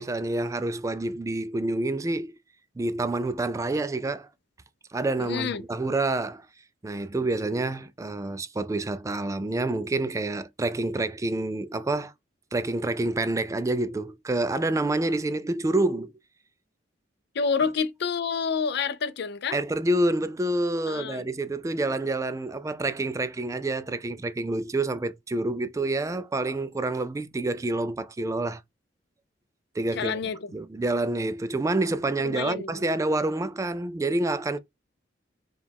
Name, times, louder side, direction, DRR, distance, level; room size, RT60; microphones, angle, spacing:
voice 1, 0.0-2.3 2.8-4.3 4.9-6.5 6.8-12.1 12.5-16.1 19.5-28.6 29.8-30.2 30.5-34.6, right 2 dB, 15° right, 0.3 m, -28 dB
voice 2, 5.2-5.6 17.3-19.6 20.9-21.2 29.9-30.4 32.2-32.8, left 5 dB, 65° left, 0.5 m, -28 dB
4.9 x 2.3 x 3.4 m
head